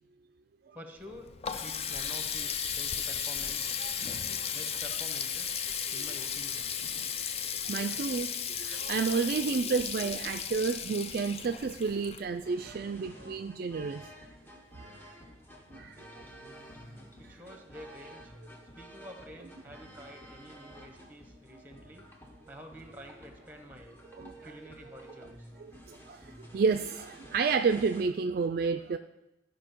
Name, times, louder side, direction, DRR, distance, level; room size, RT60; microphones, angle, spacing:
voice 1, 0.7-1.3 1.5-3.8 4.5-5.6 5.9-6.7 17.2-18.3 18.8-22.1 22.5-24.0 24.4-25.5, equal, 10° right, 4 dB, 1.1 m, -49 dB
Water tap faucet, 1.0-12.7, left 7 dB, 35° left, 0.4 m, -35 dB
voice 2, 3.8-4.5 7.7-8.3 8.6-14.0 15.7-16.0 24.2-24.3 25.9-26.2 26.5-29.0, right 5 dB, 55° right, 7 dB, 0.3 m, -30 dB
sound 1, 12.3-28.0, equal, 10° left, 0.9 m, -51 dB
sound 2, 12.5-14.9 15.2-17.7, left 1 dB, 50° left, 2.5 m, -60 dB
13.0 x 5.3 x 4.5 m, 0.92 s
head